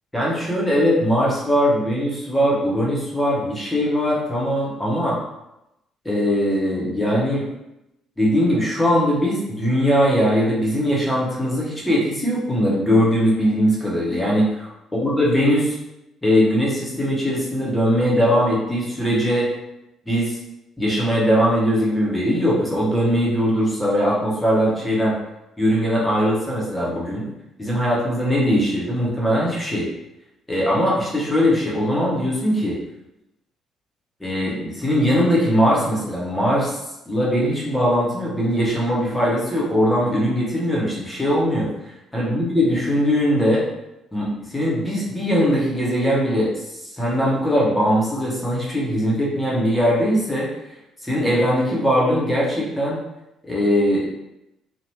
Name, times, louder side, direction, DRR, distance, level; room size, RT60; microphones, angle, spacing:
voice 1, 0.1-5.2 6.0-7.5 8.2-15.8 16.2-19.5 20.0-20.4 20.8-25.2 25.6-27.3 27.6-29.9 30.5-32.8 34.2-36.8 37.1-41.7 42.1-43.6 44.1-46.5 47.0-50.5 51.0-53.0 53.4-54.1, equal, 10° left, -5 dB, 1.2 m, -20 dB
2.9 x 2.5 x 3.0 m, 0.89 s
figure-of-eight pair, 45°, 0 cm